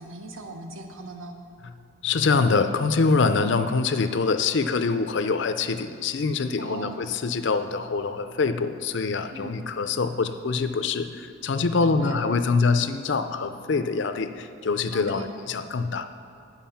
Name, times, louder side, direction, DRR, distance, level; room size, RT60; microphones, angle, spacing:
voice 1, 0.0-1.4 6.6-7.1 9.3-9.7 11.8-12.2 14.9-15.3, right 2 dB, 80° right, 4 dB, 1.0 m, -39 dB
voice 2, 2.0-16.1, left 4 dB, 60° left, 9 dB, 0.5 m, -24 dB
9.3 x 7.3 x 5.7 m, 2.4 s
head